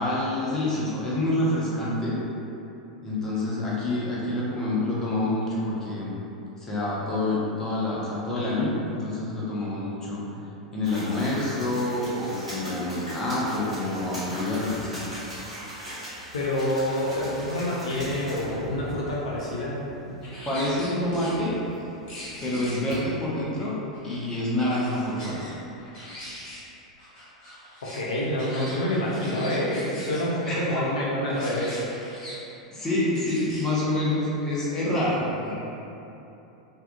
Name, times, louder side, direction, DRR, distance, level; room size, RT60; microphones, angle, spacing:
voice 1, 0.0-2.1 3.0-6.2 6.6-10.2 10.7-15.0 20.5-21.5 22.4-23.8 24.0-25.5 30.4-30.8 32.7-35.5, left 1 dB, 15° left, -7 dB, 0.6 m, -27 dB
sound 1, 10.8-23.2, equal, 85° right, 0.9 m, -40 dB
voice 2, 16.3-19.8 20.0-20.1 27.9-31.8 35.0-35.2, left 1 dB, 70° left, -5 dB, 0.4 m, -27 dB
sound 2, 20.2-21.3 22.1-23.0 23.9-25.5 25.8-26.6 27.0-30.2 31.2-32.3 33.2-33.6, left 1 dB, 30° left, 1.2 m, -42 dB
2.6 x 2.3 x 2.2 m, 2.9 s
figure-of-eight pair, 90°, 3 cm